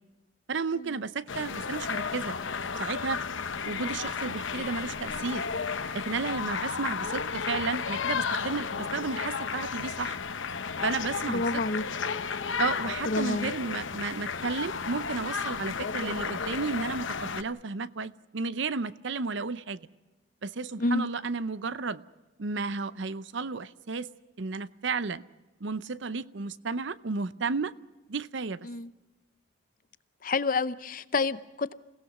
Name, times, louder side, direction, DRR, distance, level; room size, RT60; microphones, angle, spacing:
voice 1, 0.5-2.3 2.8-3.2 3.7-5.5 5.9-10.2 10.8-11.4 12.6-19.9 20.4-22.0 22.4-24.1 24.4-25.2 25.6-27.7 28.1-28.7, right 4 dB, 65° right, 0.6 m, -33 dB
sound 1, 1.3-17.4, left 5 dB, 70° left, 0.9 m, -33 dB
voice 2, 11.3-11.8 13.1-13.5 20.8-21.1 28.6-28.9 30.2-31.7, left 3 dB, 40° left, 0.6 m, -29 dB
28.5 x 17.0 x 6.1 m
head